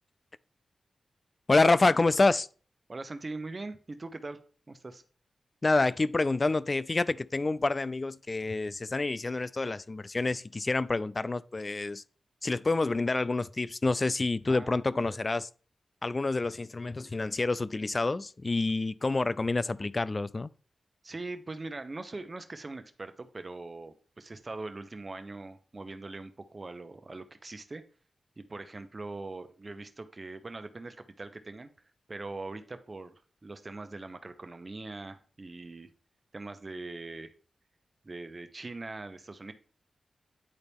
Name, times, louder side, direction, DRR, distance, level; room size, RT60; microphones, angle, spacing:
voice 1, 1.5-2.5 5.6-12.0 12.4-15.5 16.0-20.5, left 3 dB, 40° left, 0.4 m, -27 dB
voice 2, 2.9-4.4 4.7-5.0 14.5-14.8 21.0-27.8 28.4-31.7 32.1-35.9 36.3-37.3 38.0-39.5, right 3 dB, 40° right, 0.9 m, -41 dB
9.7 x 4.1 x 3.5 m
cardioid pair, 55°, 0 cm